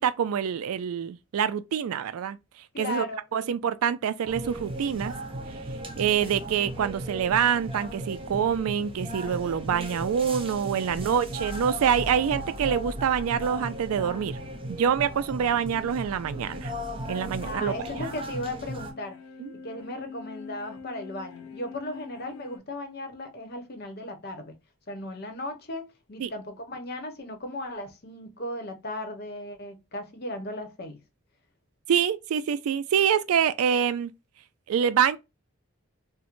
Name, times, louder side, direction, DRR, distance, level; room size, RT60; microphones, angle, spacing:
voice 1, 0.0-2.4 2.8-3.0 3.3-5.1 6.0-14.4 14.7-16.7 17.1-17.7 18.0-18.1 19.4-19.5 26.2-26.3 31.9-34.1 34.7-35.2, right 8 dB, 80° right, 0.3 m, -26 dB
voice 2, 2.7-3.2 11.2-11.3 17.4-19.2 19.6-24.5 24.9-31.0, left 1 dB, 45° left, 0.9 m, -36 dB
sound 1, 4.3-18.9, right 1 dB, 25° right, 0.6 m, -36 dB
sound 2, 9.5-22.6, left 5 dB, 85° left, 1.1 m, -47 dB
4.5 x 2.1 x 2.4 m
head